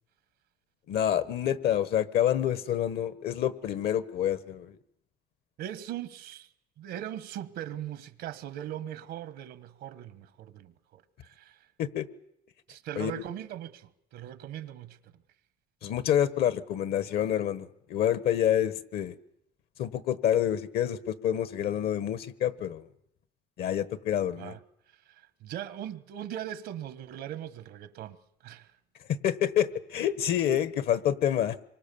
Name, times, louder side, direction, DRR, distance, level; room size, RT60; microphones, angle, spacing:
voice 1, 0.9-4.8 11.8-12.1 13.0-13.2 15.8-19.1 19.8-22.8 23.6-24.6 29.2-31.6, left 10 dB, 70° left, 1.4 m, -27 dB
voice 2, 5.6-6.5 6.8-11.7 12.7-15.1 24.4-24.6 25.1-28.2 28.4-28.7, right 11 dB, 80° right, 1.4 m, -40 dB
26.0 x 24.0 x 7.0 m
cardioid pair, 110°, 17 cm